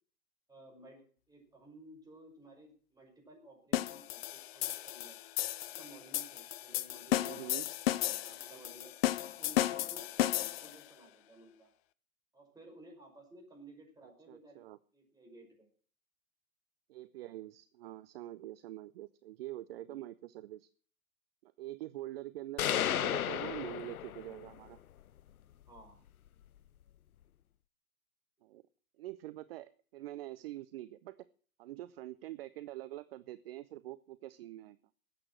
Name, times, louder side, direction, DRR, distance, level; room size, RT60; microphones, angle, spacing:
voice 1, 0.5-5.2 5.6-7.6 8.0-8.9 9.3-11.7 12.3-14.6 14.9-15.7 19.7-20.0 25.7-26.0, right 2 dB, 10° right, 0 dB, 5.4 m, -56 dB
sound 1, 3.7-10.8, left 14 dB, 45° left, 0.7 m, -34 dB
voice 2, 7.2-7.7 8.2-8.6 14.0-14.8 16.9-20.7 21.4-24.8 28.4-28.6 29.0-31.2 31.6-34.8, right 15 dB, 45° right, 16 dB, 0.6 m, -45 dB
sound 2, 22.6-24.5, left 10 dB, 80° left, 0.6 m, -33 dB
13.5 x 8.7 x 7.6 m, 0.43 s
figure-of-eight pair, 115°, 42 cm